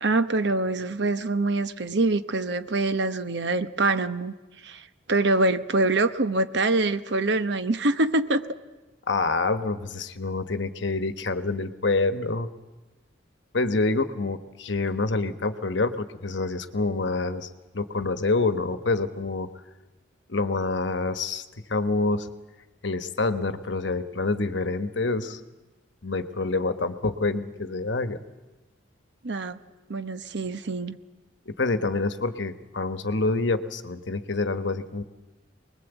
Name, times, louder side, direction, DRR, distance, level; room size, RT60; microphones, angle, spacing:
voice 1, 0.0-4.3 4.6-4.8 5.1-8.5 29.2-29.6 29.9-31.0, right 2 dB, 60° right, 11 dB, 1.0 m, -24 dB
voice 2, 9.1-12.5 13.5-19.5 20.3-21.4 21.7-22.3 22.8-25.4 26.0-28.2 31.5-35.0, left 3 dB, 65° left, 10 dB, 1.2 m, -27 dB
24.0 x 20.5 x 8.1 m, 1.1 s
head